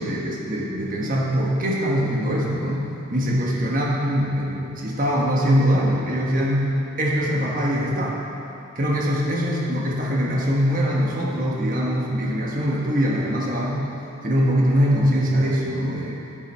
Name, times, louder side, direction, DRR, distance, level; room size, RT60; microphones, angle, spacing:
voice 1, 0.0-2.8 3.1-6.7 7.0-8.2 8.7-13.8 14.2-16.2, equal, 40° right, -3 dB, 1.3 m, -22 dB
9.2 x 8.8 x 4.4 m, 2.9 s
head